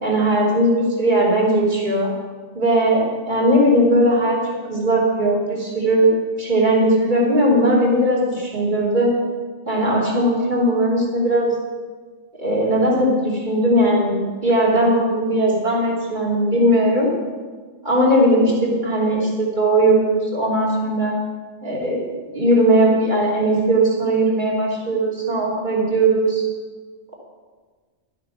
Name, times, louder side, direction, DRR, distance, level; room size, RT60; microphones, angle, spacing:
voice 1, 0.0-2.1 2.5-4.4 4.7-6.1 6.4-9.1 9.7-11.5 12.4-17.1 17.8-21.1 21.6-22.0 22.3-26.4, right 1 dB, 40° right, -3 dB, 2.9 m, -18 dB
12.0 x 8.4 x 5.9 m, 1.5 s
omnidirectional pair, 1.2 m